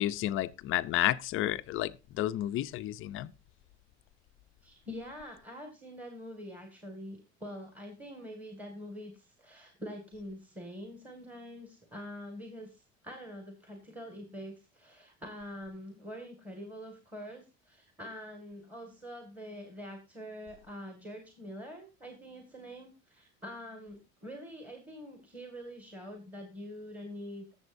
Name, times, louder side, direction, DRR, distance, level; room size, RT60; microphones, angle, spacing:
voice 1, 0.0-3.3, left 14 dB, 45° left, 0.5 m, -31 dB
voice 2, 4.6-27.6, equal, 5° right, 1.9 m, -45 dB
20.5 x 7.1 x 2.6 m
cardioid pair, 140°, 30 cm